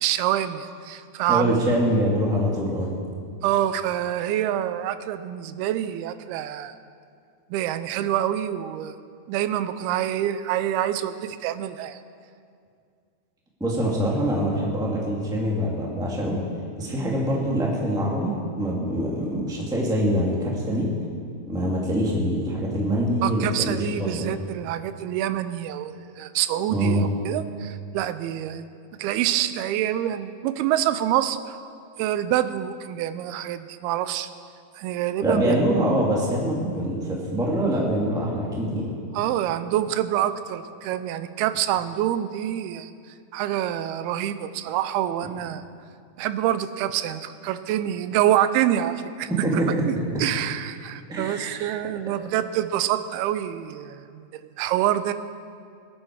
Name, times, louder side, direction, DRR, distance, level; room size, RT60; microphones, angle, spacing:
voice 1, 0.0-1.6 3.4-6.7 7.5-9.0 9.3-12.0 23.2-28.7 29.0-31.6 32.0-34.3 34.8-35.5 39.1-42.9 43.3-45.6 46.2-49.6 49.9-54.2 54.6-55.1, right 12 dB, 85° right, 12 dB, 2.6 m, -26 dB
voice 2, 1.3-2.9 13.6-16.4 16.8-20.9 21.5-24.3 26.7-27.1 35.2-38.9 49.3-49.8 51.1-51.6, equal, ahead, -3 dB, 1.5 m, -24 dB
20.5 x 11.0 x 4.8 m, 2.3 s
omnidirectional pair, 4.4 m